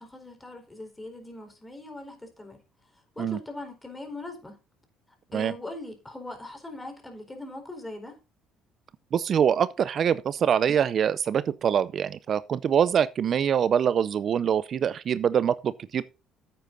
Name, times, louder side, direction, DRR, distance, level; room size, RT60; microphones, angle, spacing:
voice 1, 0.0-2.6 2.9-4.6 5.3-8.2, left 2 dB, 15° left, 4.3 m, -41 dB
voice 2, 9.1-16.0, right 8 dB, 50° right, 0.5 m, -24 dB
10.0 x 8.4 x 3.9 m
supercardioid pair, 80°, 0 cm